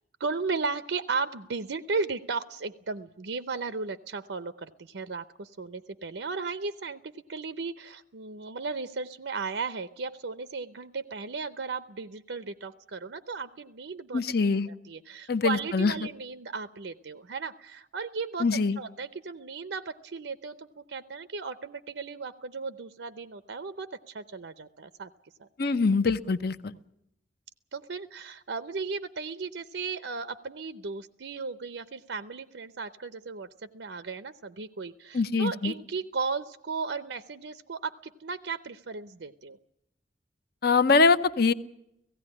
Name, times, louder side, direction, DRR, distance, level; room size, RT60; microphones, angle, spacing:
voice 1, 0.2-14.2 14.7-18.5 18.8-25.1 25.4-25.5 27.7-39.6, right 4 dB, 80° right, 12 dB, 0.7 m, -35 dB
voice 2, 14.1-14.7 15.3-15.9 18.4-18.8 25.6-26.7 35.1-35.7 40.6-41.5, left 4 dB, 55° left, 13 dB, 0.8 m, -23 dB
17.0 x 16.5 x 9.8 m, 0.83 s
head